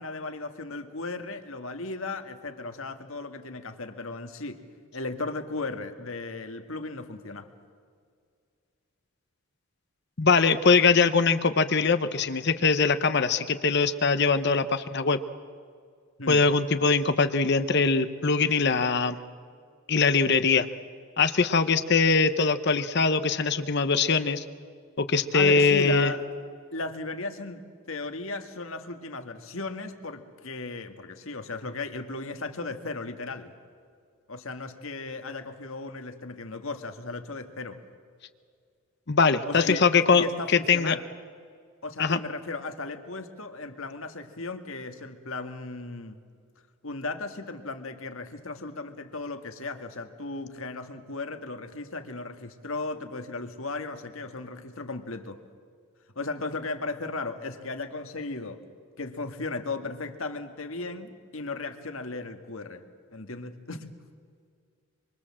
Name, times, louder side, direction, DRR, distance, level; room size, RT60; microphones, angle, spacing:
voice 1, 0.0-4.6 4.9-7.5 16.2-16.4 25.3-26.2 26.7-27.6 27.9-33.5 34.3-37.8 39.5-39.8 40.1-41.0 41.8-46.2 46.8-55.4 56.2-58.6 59.0-62.8 63.1-63.9, left 3 dB, 70° left, 7 dB, 1.9 m, -36 dB
voice 2, 10.2-15.2 16.3-19.2 19.9-20.7 21.2-24.4 25.0-26.1 39.1-40.2 40.7-41.0 42.0-42.2, left 4 dB, 50° left, 11 dB, 0.9 m, -22 dB
25.5 x 24.5 x 7.6 m, 2.1 s
head